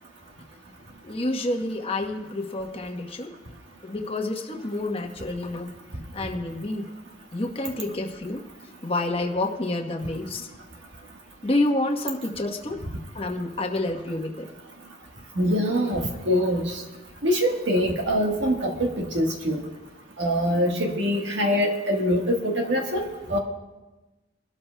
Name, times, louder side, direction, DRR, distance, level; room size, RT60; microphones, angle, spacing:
voice 1, 1.0-3.3 3.8-5.7 6.1-6.9 7.3-8.4 8.8-10.5 11.4-12.8 13.1-14.5, left 2 dB, 30° left, 2 dB, 1.1 m, -28 dB
voice 2, 15.4-16.8 17.2-19.6 20.2-23.4, equal, 75° right, 1 dB, 1.4 m, -24 dB
24.5 x 13.0 x 2.2 m, 1.1 s
head